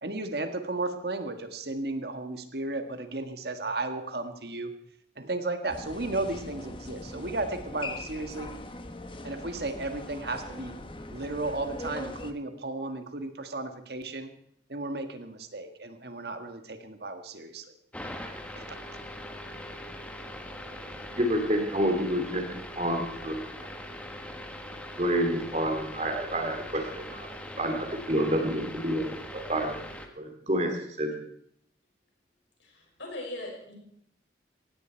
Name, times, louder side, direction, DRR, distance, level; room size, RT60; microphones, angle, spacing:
voice 1, 0.0-4.7 5.2-8.5 9.2-10.7 11.1-14.3 14.7-17.7 18.6-18.8, right 2 dB, 60° right, 7 dB, 1.6 m, -34 dB
sound 1, 5.7-12.3, left 2 dB, 30° left, 1.1 m, -41 dB
sound 2, 17.9-30.1, left 1 dB, 5° left, 1.4 m, -41 dB
voice 2, 21.2-22.4 22.8-23.4 25.0-27.3 27.6-29.8 30.2-31.1, equal, 35° right, 4 dB, 2.9 m, -28 dB
voice 3, 32.6-33.7, left 1 dB, 85° left, 0 dB, 5.9 m, -39 dB
17.5 x 16.5 x 4.5 m, 0.67 s
head